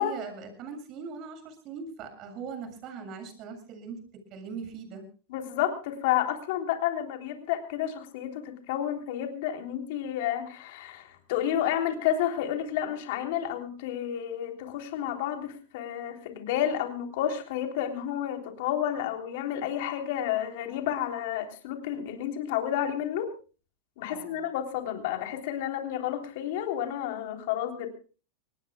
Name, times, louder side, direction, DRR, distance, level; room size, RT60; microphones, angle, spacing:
voice 1, 0.0-4.0 4.3-5.0 24.1-24.4, right 6 dB, 45° right, 7 dB, 7.3 m, -40 dB
voice 2, 5.3-23.3 24.0-27.9, left 10 dB, 65° left, 5 dB, 3.5 m, -30 dB
25.0 x 19.5 x 2.3 m, 0.36 s
hypercardioid pair, 115°, 0 cm